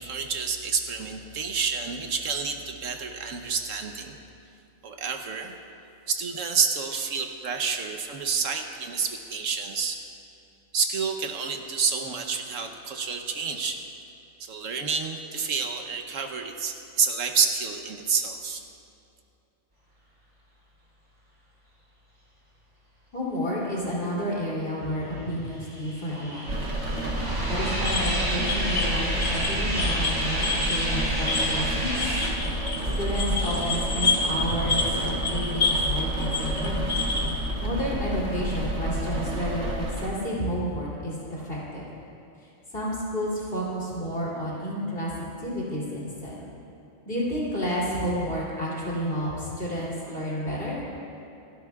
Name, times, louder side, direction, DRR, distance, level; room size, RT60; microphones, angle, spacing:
voice 1, 0.0-4.2 4.8-5.5 6.1-10.0 10.7-13.8 14.4-18.6, right 5 dB, 85° right, 5 dB, 1.3 m, -29 dB
voice 2, 23.1-26.5 27.5-32.2 32.9-36.8 37.6-41.8 42.7-45.1 45.4-46.4 47.0-50.8, equal, 50° left, -7 dB, 3.4 m, -30 dB
sound 1, 25.2-32.3, right 1 dB, 30° right, 3.3 m, -31 dB
Rain, 26.5-40.1, right 1 dB, 65° right, 1.8 m, -30 dB
sound 2, 27.8-35.9 36.2-37.3, left 3 dB, 85° left, 2.1 m, -29 dB
27.0 x 12.0 x 2.4 m, 2.7 s
omnidirectional pair, 1.3 m